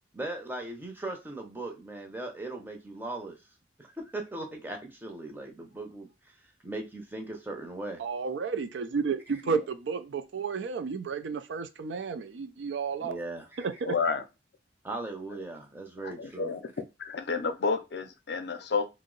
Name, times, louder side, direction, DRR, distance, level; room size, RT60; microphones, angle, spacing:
voice 1, 0.1-3.4 3.8-6.3 6.6-8.0 13.0-13.7 14.8-16.5, right 2 dB, 10° right, 0.6 m, -38 dB
voice 2, 8.0-13.2 13.6-13.7, right 5 dB, 85° right, 0.4 m, -32 dB
voice 3, 13.9-14.2 16.0-16.6 17.1-18.9, left 4 dB, 65° left, 0.4 m, -30 dB
2.7 x 2.0 x 3.8 m
head